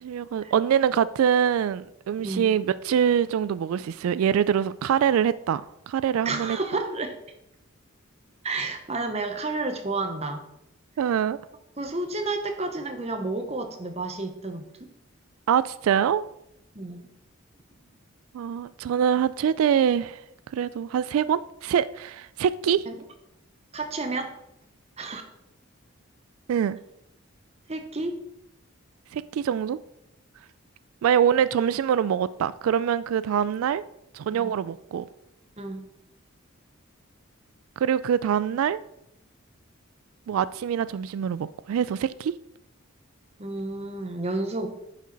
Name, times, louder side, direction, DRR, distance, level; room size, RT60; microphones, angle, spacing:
voice 1, 0.0-5.6 5.9-6.6 11.0-11.4 15.5-16.2 18.3-20.2 20.5-22.8 26.5-26.8 29.1-29.8 31.0-33.8 34.1-35.1 37.8-38.8 40.3-42.3, right 8 dB, 90° right, 0.3 m, -24 dB
voice 2, 6.2-7.1 8.4-10.4 11.8-14.9 16.7-17.0 22.9-23.0 23.7-24.3 25.0-25.3 27.7-28.2 34.3-34.5 35.6-35.8 43.4-44.7, right 2 dB, 30° right, 0.9 m, -31 dB
10.0 x 5.3 x 4.0 m
head